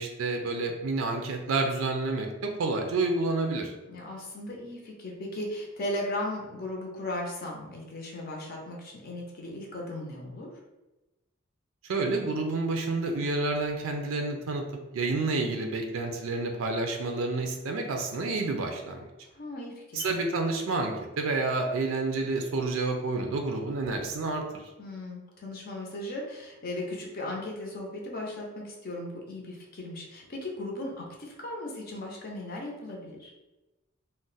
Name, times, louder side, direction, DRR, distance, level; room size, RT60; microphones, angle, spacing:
voice 1, 0.0-3.7 11.9-14.7 14.9-19.1 19.9-24.7, right 3 dB, 80° right, 3 dB, 0.4 m, -29 dB
voice 2, 3.9-10.5 19.3-20.1 24.8-33.3, left 1 dB, 45° left, -1 dB, 0.6 m, -37 dB
2.4 x 2.1 x 3.9 m, 1.1 s
head